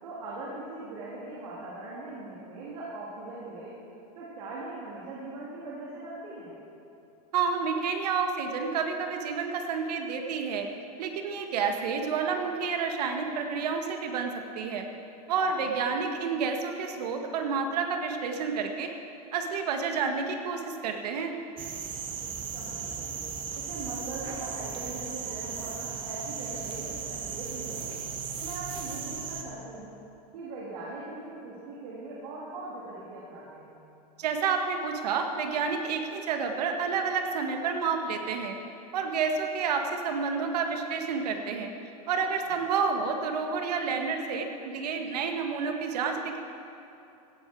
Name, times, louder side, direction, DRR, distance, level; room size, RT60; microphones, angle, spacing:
voice 1, 0.0-3.8 4.1-6.5 15.4-15.7 22.5-28.0 28.4-29.9 30.3-33.8 42.5-42.6, right 2 dB, 65° right, -6 dB, 3.3 m, -41 dB
voice 2, 7.3-10.7 11.0-14.9 15.3-18.9 19.3-21.3 34.2-38.6 38.9-41.7 42.1-46.4, right 5 dB, 80° right, 4 dB, 1.6 m, -29 dB
sound 1, 21.6-29.4, right 6 dB, 25° right, 1.1 m, -36 dB
17.0 x 11.0 x 4.7 m, 2.8 s
supercardioid pair, 165°, 20 cm